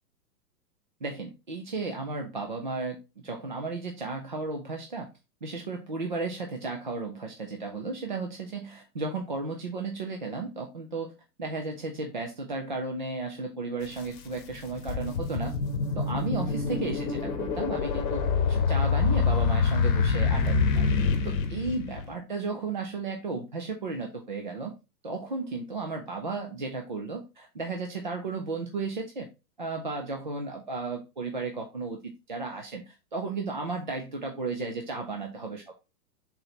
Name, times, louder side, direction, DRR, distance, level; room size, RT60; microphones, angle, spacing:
voice 1, 1.0-5.1 5.4-11.1 11.4-15.5 16.0-18.2 18.5-20.9 21.2-24.7 25.0-29.3 29.6-32.0 32.3-35.7, right 3 dB, 35° right, 3 dB, 0.4 m, -34 dB
sound 1, 13.9-14.0 14.5-22.1, left 5 dB, 30° left, 1.2 m, -26 dB
5.8 x 4.0 x 4.0 m, 0.27 s
hypercardioid pair, 165°, 49 cm